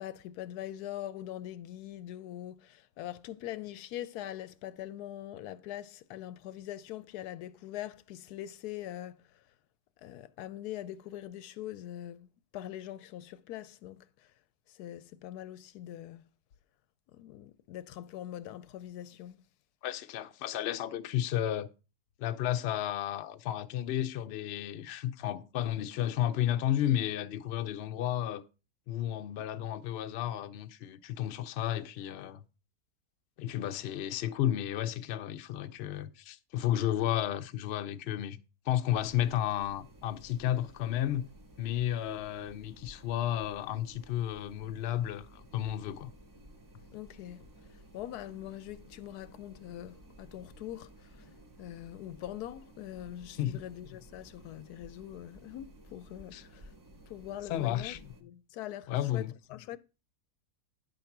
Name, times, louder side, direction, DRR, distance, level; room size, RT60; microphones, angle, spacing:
voice 1, 0.0-9.2 10.0-14.1 14.7-16.3 17.1-19.4 46.9-47.4 47.9-50.9 51.2-51.3 51.6-56.7 57.1-59.8, left 12 dB, 90° left, 1.1 m, -43 dB
voice 2, 19.8-21.7 22.2-28.4 28.9-32.4 33.4-41.3 41.6-46.1 53.4-53.6 56.3-56.4 57.5-58.0 58.9-59.3, left 11 dB, 65° left, 0.6 m, -32 dB
sound 1, 38.9-58.2, right 1 dB, 20° right, 0.5 m, -55 dB
9.6 x 3.9 x 5.9 m
omnidirectional pair, 1.6 m